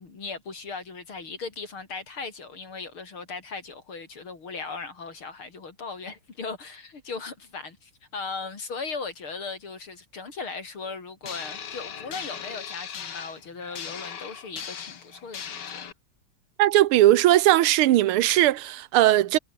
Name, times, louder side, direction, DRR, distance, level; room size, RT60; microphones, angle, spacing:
voice 1, 0.0-15.9, left 4 dB, 75° left, 4.7 m, -38 dB
sound 1, 11.2-15.9, left 7 dB, 55° left, 2.1 m, -38 dB
voice 2, 16.6-19.4, right 14 dB, 85° right, 1.7 m, -19 dB
omnidirectional pair, 2.4 m